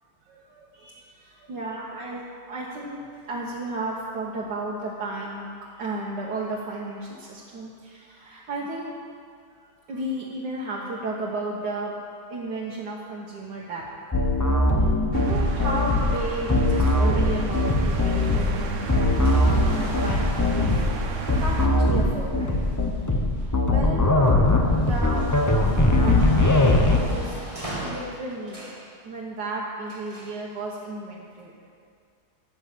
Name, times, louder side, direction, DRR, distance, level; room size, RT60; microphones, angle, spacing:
voice 1, 0.2-8.9 9.5-12.0 12.3-13.8 14.1-14.3 15.1-20.7 21.3-22.5 23.4-24.1 24.8-25.3 25.8-27.4 27.8-28.8 29.0-31.5, right 2 dB, 90° right, -4 dB, 1.8 m, -33 dB
sound 1, 14.1-27.0, left 2 dB, 25° left, 0.4 m, -21 dB
sound 2, 15.1-21.7, right 5 dB, 55° right, 1.1 m, -33 dB
sound 3, 16.6-23.8 24.3-28.9 29.9-30.4 31.3-31.4, right 1 dB, 20° right, 2.0 m, -40 dB
12.5 x 6.2 x 8.3 m, 2.2 s
omnidirectional pair, 1.8 m